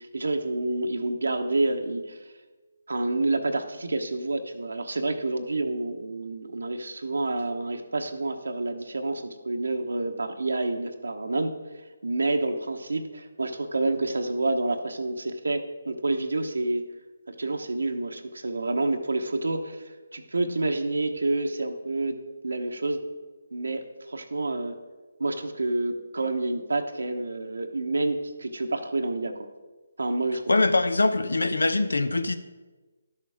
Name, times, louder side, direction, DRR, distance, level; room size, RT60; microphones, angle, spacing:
voice 1, 0.0-2.2 2.9-11.6 12.0-16.9 17.3-19.8 20.1-23.0 23.5-24.8 25.2-29.5 30.0-30.5, right 2 dB, 80° right, 4 dB, 1.1 m, -28 dB
voice 2, 30.5-32.4, left 2 dB, 85° left, 10 dB, 0.8 m, -23 dB
11.5 x 6.7 x 4.9 m, 1.3 s
figure-of-eight pair, 155°, 0 cm